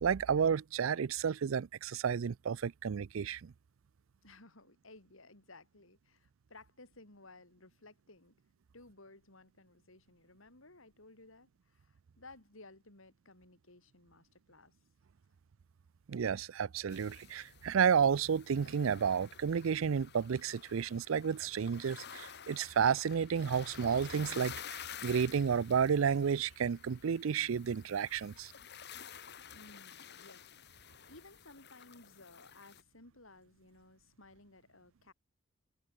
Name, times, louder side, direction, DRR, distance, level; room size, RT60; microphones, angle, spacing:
voice 1, 0.0-3.5 16.1-28.5, right 7 dB, 70° right, 0.4 m, -31 dB
voice 2, 4.2-8.3 8.7-14.8 29.5-35.1, left 2 dB, 75° left, 5.4 m, -58 dB
sound 1, 16.9-32.8, left 8 dB, 55° left, 2.6 m, -51 dB
head